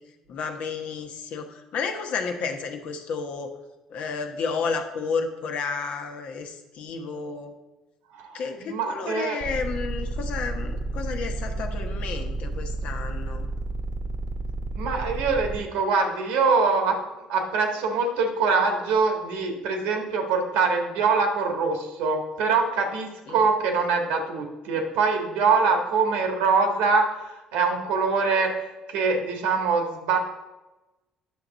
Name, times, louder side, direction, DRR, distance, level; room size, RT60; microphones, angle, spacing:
voice 1, 0.3-3.5 3.9-7.5 8.3-13.5 23.3-23.4, left 5 dB, 65° left, 5 dB, 1.1 m, -31 dB
voice 2, 8.1-9.4 14.7-17.0 17.3-30.2, right 4 dB, 85° right, 3 dB, 1.5 m, -24 dB
sound 1, 9.4-15.6, right 2 dB, 40° right, 1.0 m, -31 dB
9.5 x 6.3 x 4.0 m, 1.1 s
supercardioid pair, 75°, 2 cm